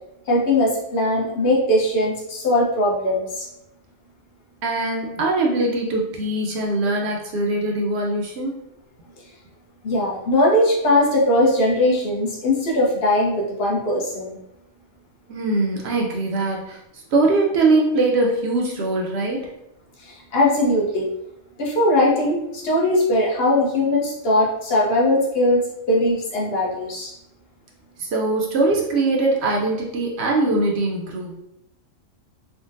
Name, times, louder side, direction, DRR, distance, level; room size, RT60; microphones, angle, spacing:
voice 1, 0.3-3.5 9.8-14.4 20.0-21.1 21.6-27.1, left 1 dB, 55° left, -4 dB, 0.9 m, -20 dB
voice 2, 4.6-8.6 15.3-16.8 17.1-19.5 28.0-31.4, right 2 dB, 65° right, -1 dB, 0.7 m, -22 dB
3.6 x 2.1 x 2.5 m, 0.84 s
omnidirectional pair, 1.4 m